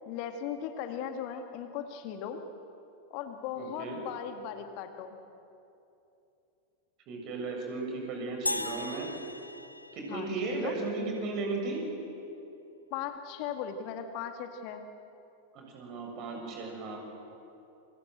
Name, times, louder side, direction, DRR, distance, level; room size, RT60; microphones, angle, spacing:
voice 1, 0.1-2.5 3.1-5.2 10.1-10.8 12.9-14.8, left 8 dB, 45° left, 6 dB, 2.0 m, -38 dB
voice 2, 3.6-4.0 7.1-9.1 9.9-11.8 15.5-17.0, right 3 dB, 40° right, 1 dB, 7.5 m, -35 dB
sound 1, 8.5-10.9, left 1 dB, 85° left, 1.0 m, -37 dB
28.5 x 25.5 x 7.9 m, 2.8 s
figure-of-eight pair, 90°, 0 cm